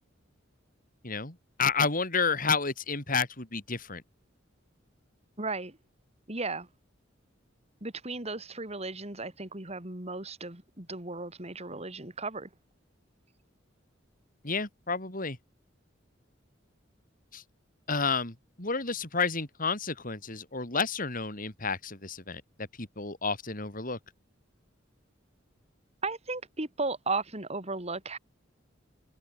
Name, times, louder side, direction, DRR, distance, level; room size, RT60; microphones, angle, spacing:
voice 1, 1.0-4.0 14.4-15.4 17.3-17.4 17.9-24.0, left 5 dB, 45° left, 4.1 m, -31 dB
voice 2, 5.4-5.8 6.3-6.7 7.8-12.5 26.0-28.2, right 3 dB, 35° right, 3.5 m, -35 dB
head